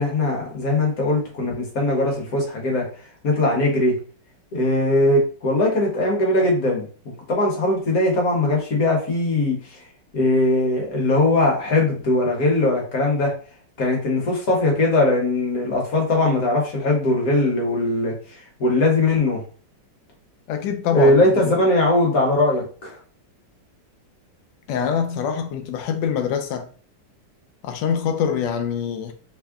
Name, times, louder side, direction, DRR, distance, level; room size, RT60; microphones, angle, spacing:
voice 1, 0.0-2.8 3.2-3.9 4.5-6.9 7.3-9.8 10.1-13.3 13.8-19.4 20.9-23.0, left 2 dB, 55° left, 1.3 m, -20 dB
voice 2, 20.5-21.2 21.4-21.5 24.7-26.7 27.6-29.1, left 7 dB, 75° left, 1.2 m, -24 dB
3.5 x 2.1 x 3.5 m
omnidirectional pair, 2.1 m